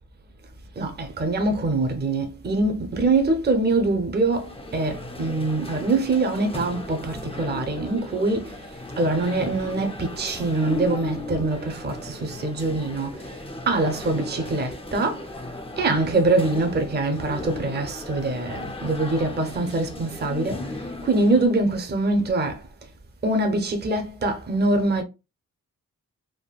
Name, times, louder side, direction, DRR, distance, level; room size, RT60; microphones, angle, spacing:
voice 1, 0.8-15.3 15.8-22.6 23.2-25.0, right 2 dB, 30° right, 0.6 m, -24 dB
sound 1, 4.3-21.6, left 2 dB, 20° left, 0.5 m, -36 dB
3.5 x 2.2 x 2.3 m
wide cardioid pair, 85°, 32 cm